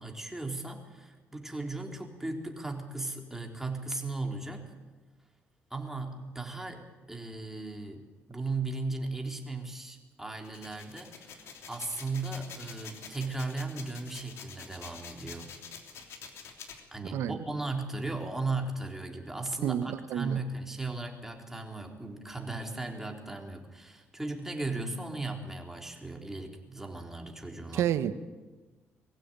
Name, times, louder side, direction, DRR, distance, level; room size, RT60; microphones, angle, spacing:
voice 1, 0.0-4.7 5.7-15.5 16.9-27.9, right 3 dB, 10° right, 2 dB, 3.6 m, -37 dB
sound 1, 10.4-16.8, left 6 dB, 70° left, 3.2 m, -47 dB
voice 2, 17.1-17.4 19.6-20.4 27.7-28.1, right 10 dB, 80° right, 12 dB, 1.2 m, -30 dB
22.5 x 15.5 x 9.1 m, 1.2 s
cardioid pair, 95°, 5 cm